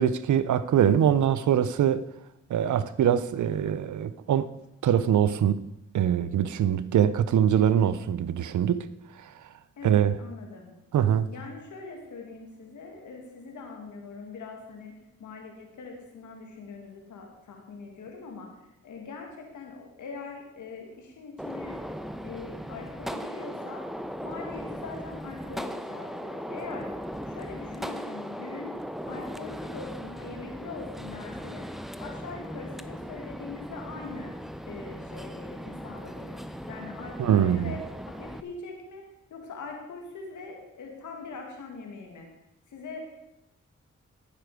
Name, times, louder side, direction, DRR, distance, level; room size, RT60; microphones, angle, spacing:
voice 1, 0.0-2.0 2.5-4.5 4.8-5.6 5.9-8.9 9.8-10.2 10.9-11.3 37.2-37.7, right 9 dB, 80° right, 0.6 m, -23 dB
voice 2, 9.8-10.7 11.3-14.9 15.2-18.5 18.8-21.8 22.2-23.8 24.2-26.9 27.2-28.7 29.1-31.7 32.0-34.3 34.7-36.4 36.7-37.8 38.1-39.0 39.3-42.3 42.7-43.0, left 4 dB, 90° left, 2.2 m, -42 dB
Gunshot gunfire, 21.4-38.4, equal, ahead, 0.8 m, -38 dB
15.5 x 7.0 x 4.9 m
supercardioid pair, 40°, 29 cm